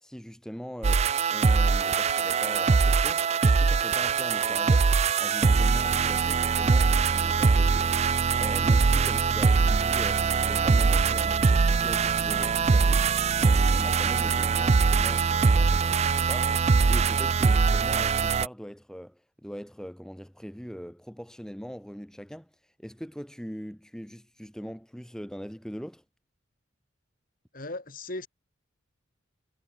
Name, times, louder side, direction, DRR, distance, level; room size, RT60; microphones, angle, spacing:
voice 1, 0.0-13.1 13.4-16.6 16.9-26.0, equal, 5° left, 1.5 m, -41 dB
sound 1, 0.8-18.5, right 5 dB, 30° right, 0.4 m, -22 dB
voice 2, 27.5-28.3, left 2 dB, 45° left, 3.6 m, -37 dB
head